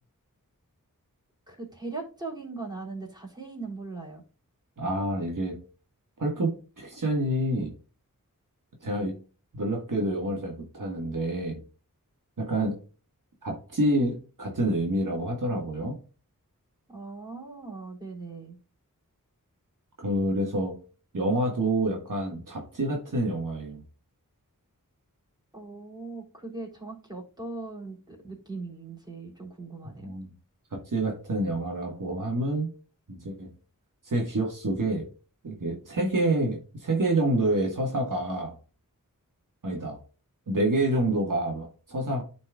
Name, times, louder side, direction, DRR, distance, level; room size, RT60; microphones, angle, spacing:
voice 1, 1.5-4.2 16.9-18.6 25.5-30.1, right 3 dB, 10° right, -2 dB, 3.4 m, -39 dB
voice 2, 4.8-5.6 6.2-7.7 8.8-9.1 9.5-11.6 12.4-12.7 13.4-16.0 20.0-20.7 21.1-23.8 30.0-30.3 30.9-32.7 33.1-33.5 34.0-35.1 35.4-38.6 39.6-40.0 40.5-42.2, right 1 dB, 65° right, 0 dB, 1.6 m, -27 dB
12.5 x 4.3 x 2.3 m, 0.36 s
wide cardioid pair, 50°, 34 cm